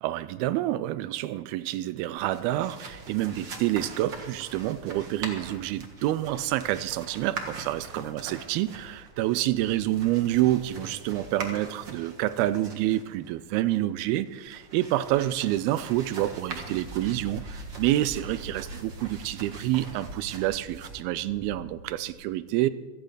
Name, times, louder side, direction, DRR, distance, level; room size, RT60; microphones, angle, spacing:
voice 1, 0.0-22.7, right 15 dB, 80° right, 15 dB, 2.4 m, -28 dB
sound 1, 2.2-22.1, right 2 dB, 50° right, 1.4 m, -42 dB
17.0 x 14.0 x 4.9 m, 1.3 s
omnidirectional pair, 4.5 m